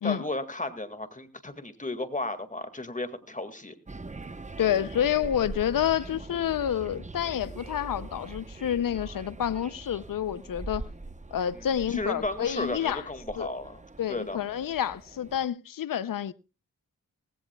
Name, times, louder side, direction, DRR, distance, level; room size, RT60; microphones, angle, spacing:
voice 1, 0.0-3.7 11.5-13.8 14.1-14.4, left 2 dB, 25° left, 2.0 m, -34 dB
sound 1, 3.9-15.4, right 2 dB, 20° right, 0.9 m, -42 dB
voice 2, 4.6-10.9 11.3-13.0 13.4-13.5 14.0-16.3, left 10 dB, 85° left, 0.6 m, -29 dB
18.0 x 16.0 x 2.3 m
cardioid pair, 60°, 33 cm